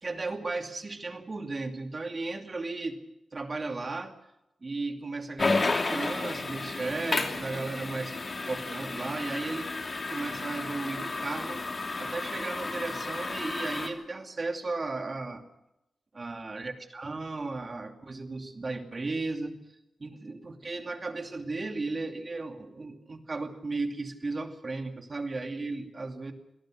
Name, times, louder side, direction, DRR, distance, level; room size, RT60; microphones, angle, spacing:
voice 1, 0.0-3.0 3.3-4.1 4.6-8.1 8.5-9.7 10.1-11.6 12.0-15.4 16.1-19.6 20.0-26.3, right 3 dB, 40° right, 6 dB, 2.6 m, -35 dB
sound 1, 5.4-13.9, left 3 dB, 45° left, 3.0 m, -32 dB
25.5 x 18.0 x 6.4 m, 0.86 s
cardioid pair, 70°, 0 cm